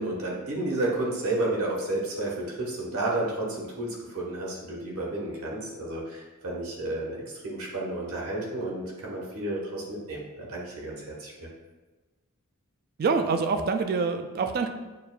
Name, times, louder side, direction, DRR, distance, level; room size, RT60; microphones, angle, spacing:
voice 1, 0.0-11.3, right 2 dB, 70° right, -3 dB, 1.0 m, -31 dB
voice 2, 13.0-14.7, right 4 dB, 45° right, 7 dB, 0.3 m, -26 dB
6.5 x 2.4 x 2.2 m, 1.2 s
head